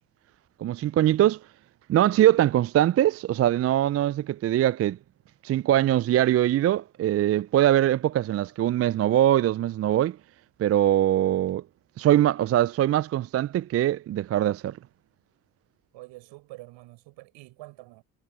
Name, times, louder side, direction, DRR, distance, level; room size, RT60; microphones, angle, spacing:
voice 1, 0.6-1.4 1.9-5.0 5.4-10.2 10.6-11.6 12.0-14.8, right 12 dB, 30° right, 0.5 m, -22 dB
voice 2, 15.9-18.0, right 20 dB, 65° right, 4.9 m, -46 dB
hypercardioid pair, 55°, 47 cm